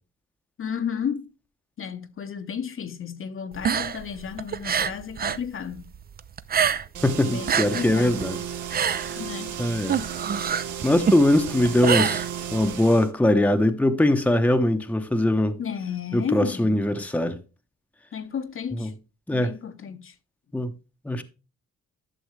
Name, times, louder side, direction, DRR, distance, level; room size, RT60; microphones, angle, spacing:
voice 1, 0.6-1.3 1.8-5.9 7.3-8.2 9.1-9.5 15.6-16.8 18.1-18.9 19.3-20.1, left 7 dB, 45° left, 0.9 m, -33 dB
sound 1, 3.5-5.5 5.7-7.1 7.3-12.8, right 7 dB, 30° right, 0.5 m, -26 dB
sound 2, 6.9-13.1, right 8 dB, 80° right, 1.3 m, -34 dB
voice 2, 7.0-8.4 9.6-10.0 10.8-12.2 12.5-15.6 16.1-17.4 18.8-18.9 19.3-19.5 20.5-20.7 21.1-21.2, left 1 dB, 5° left, 0.9 m, -21 dB
11.5 x 6.2 x 3.2 m
cardioid pair, 90°, 30 cm